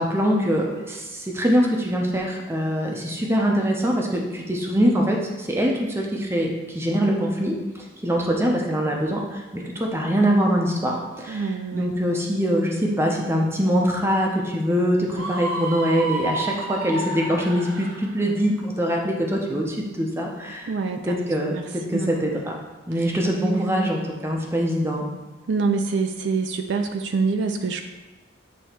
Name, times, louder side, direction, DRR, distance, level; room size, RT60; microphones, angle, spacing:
voice 1, 0.0-20.7 21.1-22.6 22.9-25.1, equal, 10° right, -1 dB, 0.8 m, -23 dB
voice 2, 11.3-11.9 20.7-22.3 23.3-23.9 25.5-27.8, right 4 dB, 60° right, 5 dB, 0.4 m, -26 dB
Screaming, 15.1-18.1, right 2 dB, 90° right, 0.8 m, -30 dB
8.2 x 3.1 x 4.4 m, 1.2 s
head